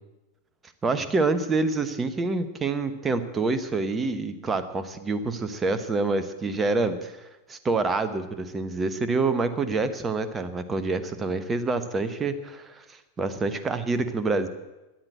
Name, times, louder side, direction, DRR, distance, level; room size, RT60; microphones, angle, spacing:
voice 1, 0.8-7.2 7.5-14.5, right 3 dB, 15° right, 11 dB, 1.1 m, -27 dB
13.0 x 9.9 x 7.8 m, 1.0 s
figure-of-eight pair, 90°, 0 cm